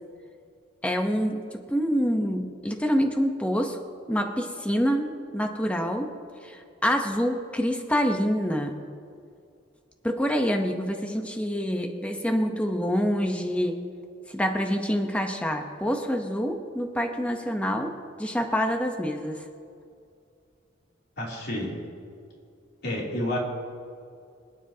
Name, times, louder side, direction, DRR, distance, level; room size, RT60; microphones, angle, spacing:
voice 1, 0.8-3.8 4.1-6.1 6.4-8.8 10.0-13.8 14.3-19.4, equal, 5° left, 3 dB, 0.8 m, -26 dB
voice 2, 21.2-21.7 22.8-23.4, left 1 dB, 55° left, -4 dB, 2.9 m, -29 dB
26.5 x 9.9 x 2.8 m, 2.3 s
head